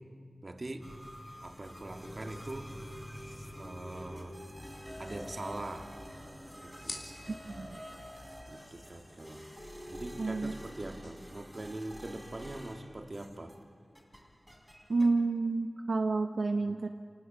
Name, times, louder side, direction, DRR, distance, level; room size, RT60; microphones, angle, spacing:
voice 1, 0.4-0.9 1.4-2.7 3.6-4.4 5.0-5.9 6.6-7.0 8.5-9.5 9.9-13.5, right 2 dB, 40° right, 5 dB, 1.8 m, -42 dB
sound 1, 0.8-13.7 13.9-15.1, equal, ahead, 3.4 m, -48 dB
sound 2, 2.0-10.7, left 1 dB, 20° left, 2.2 m, -51 dB
sound 3, 5.4-13.0, left 2 dB, 80° left, 3.4 m, -53 dB
voice 2, 7.4-7.8 10.2-10.6 14.9-16.9, right 3 dB, 75° right, 6 dB, 0.7 m, -29 dB
29.0 x 18.5 x 6.7 m, 2.2 s
wide cardioid pair, 70°, 0 cm